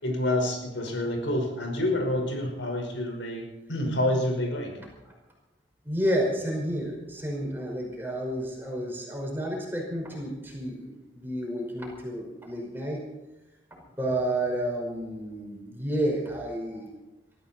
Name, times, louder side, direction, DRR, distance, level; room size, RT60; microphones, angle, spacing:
voice 1, 0.0-3.4 3.7-4.7, left 1 dB, 80° left, 2 dB, 5.5 m, -28 dB
voice 2, 5.8-13.0 14.0-16.9, right 1 dB, 10° right, -1 dB, 5.5 m, -30 dB
22.5 x 14.0 x 4.5 m, 1.0 s
head